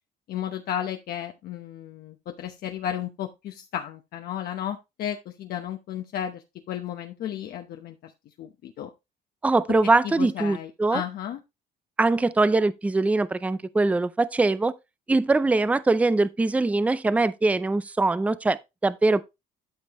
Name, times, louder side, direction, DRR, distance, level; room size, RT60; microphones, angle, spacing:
voice 1, 0.3-8.1 8.4-8.9 10.0-11.4, left 10 dB, 65° left, 0.9 m, -33 dB
voice 2, 9.4-11.0 12.0-14.7 15.1-19.2, right 3 dB, 10° right, 0.4 m, -22 dB
12.5 x 5.4 x 3.0 m
cardioid pair, 110°, 17 cm